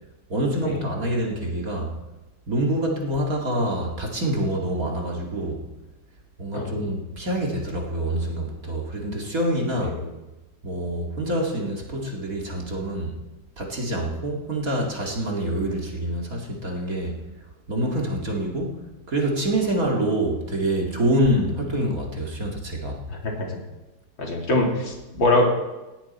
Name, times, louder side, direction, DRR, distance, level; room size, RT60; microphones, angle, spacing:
voice 1, 0.3-1.9 2.5-5.7 6.4-9.9 10.6-13.2 13.6-17.2 17.7-18.8 19.1-23.0, right 1 dB, 40° right, -1 dB, 2.7 m, -26 dB
voice 2, 9.7-10.1 23.1-23.6 24.2-25.5, left 2 dB, 60° left, 0 dB, 3.4 m, -24 dB
18.5 x 16.5 x 4.4 m, 1.1 s
omnidirectional pair, 2.3 m